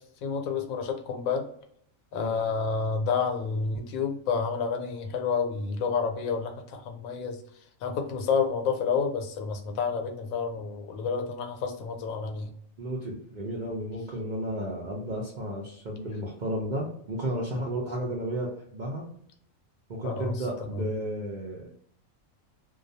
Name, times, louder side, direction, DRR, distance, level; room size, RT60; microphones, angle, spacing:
voice 1, 0.2-1.5 2.1-7.4 7.8-12.5 17.5-17.7 20.0-20.4 20.7-20.9, left 5 dB, 85° left, 5 dB, 1.0 m, -29 dB
voice 2, 12.8-19.0 19.9-21.8, right 1 dB, 55° right, -3 dB, 0.5 m, -33 dB
2.3 x 2.2 x 2.6 m, 0.65 s
omnidirectional pair, 1.4 m